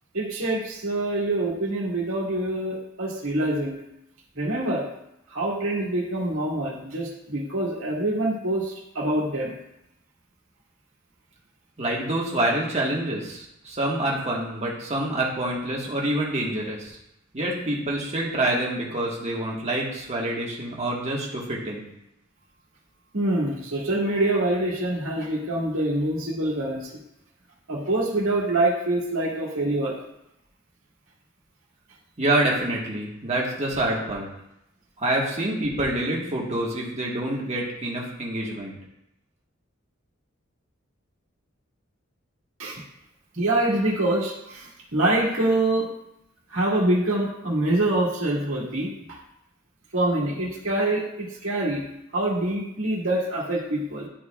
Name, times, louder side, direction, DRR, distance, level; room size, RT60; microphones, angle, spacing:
voice 1, 0.1-3.8 4.4-4.8 5.3-9.6 23.1-26.9 27.7-30.0 42.6-42.8 43.3-45.9 46.5-49.2 49.9-51.8 52.1-54.1, right 1 dB, 85° right, -4 dB, 1.9 m, -25 dB
voice 2, 11.8-17.0 17.3-21.9 32.2-34.3 35.0-38.8, right 1 dB, 35° right, -3 dB, 1.4 m, -27 dB
12.0 x 4.1 x 2.4 m, 0.83 s
head